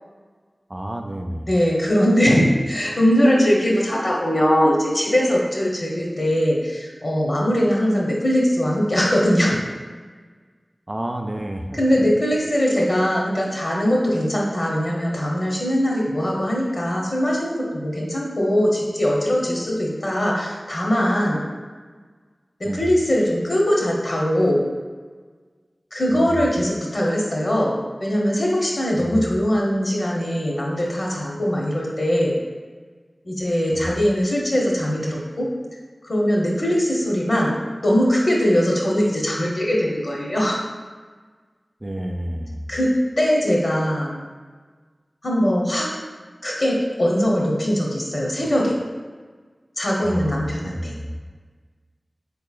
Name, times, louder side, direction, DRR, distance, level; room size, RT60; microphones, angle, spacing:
voice 1, 0.7-1.5 10.9-12.0 22.6-22.9 26.1-26.5 29.0-29.3 33.7-34.0 41.8-42.6 50.0-51.2, equal, 30° right, 4 dB, 0.3 m, -30 dB
voice 2, 1.5-9.6 11.7-21.4 22.6-24.6 25.9-27.7 28.0-32.3 33.2-35.5 36.0-37.5 37.8-40.6 42.7-44.1 45.2-45.9 46.4-48.7 49.8-50.9, equal, 65° left, -3 dB, 0.7 m, -21 dB
3.9 x 2.9 x 2.3 m, 1.5 s
wide cardioid pair, 45°, 0 cm